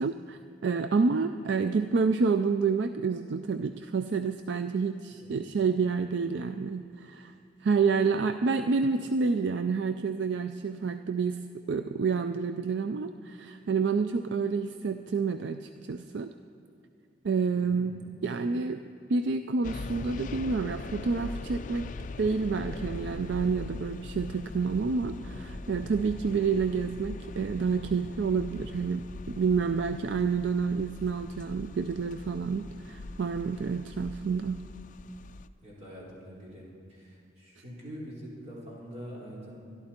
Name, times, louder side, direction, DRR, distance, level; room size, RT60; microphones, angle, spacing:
voice 1, 0.0-7.3 7.6-11.4 11.7-16.3 17.2-18.0 18.2-18.8 19.1-21.9 22.2-34.6, right 5 dB, 65° right, 9 dB, 0.4 m, -29 dB
voice 2, 17.5-17.9 35.6-39.6, equal, 35° right, -6 dB, 4.1 m, -44 dB
sound 1, 19.6-35.5, left 3 dB, 40° left, 0.4 m, -41 dB
23.5 x 11.5 x 4.4 m, 2.4 s
head